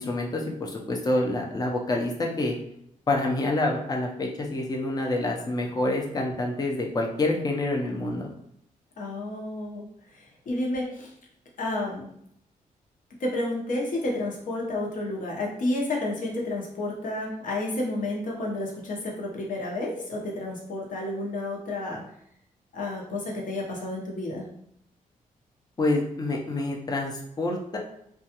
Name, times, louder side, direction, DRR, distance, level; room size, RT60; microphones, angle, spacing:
voice 1, 0.0-2.6 3.1-8.3 25.8-27.8, left 2 dB, 25° left, 0 dB, 0.5 m, -27 dB
voice 2, 9.0-9.9 10.1-11.1 11.6-12.1 13.2-22.0 22.7-24.5, left 2 dB, 65° left, -2 dB, 0.7 m, -31 dB
2.3 x 2.3 x 2.8 m, 0.72 s
cardioid pair, 80°, 14 cm